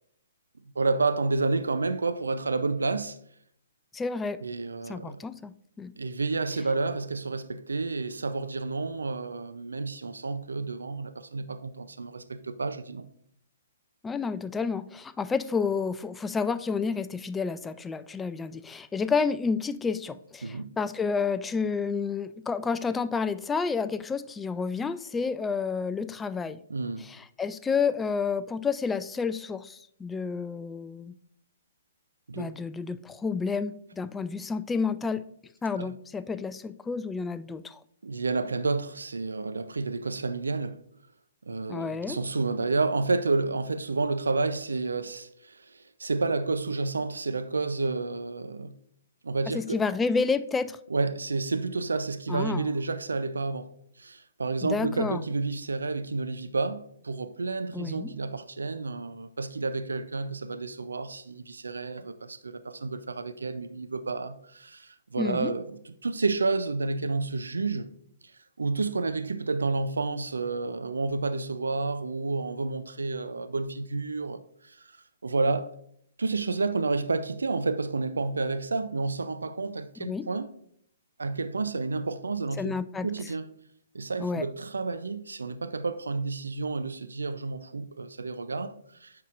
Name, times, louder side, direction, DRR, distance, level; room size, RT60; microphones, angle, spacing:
voice 1, 0.8-3.2 4.4-5.2 6.0-13.1 20.4-20.7 26.7-27.1 32.3-32.5 35.8-35.9 38.0-40.8 41.5-48.7 49.2-49.8 50.9-53.7 54.0-67.9 68.6-75.0 75.2-75.7 76.2-80.5 81.2-82.8 83.0-83.5 83.9-89.1, right 3 dB, 80° right, 0.5 m, -30 dB
voice 2, 3.9-4.4 4.9-5.9 14.0-26.6 27.0-31.2 32.4-35.2 35.6-37.8 41.7-42.2 49.5-50.8 52.3-52.7 54.6-55.2 57.7-58.1 65.2-65.5 80.0-80.2 82.6-83.1 84.2-84.5, left 5 dB, 10° left, 0.3 m, -30 dB
9.2 x 5.6 x 2.5 m
figure-of-eight pair, 125°, 0 cm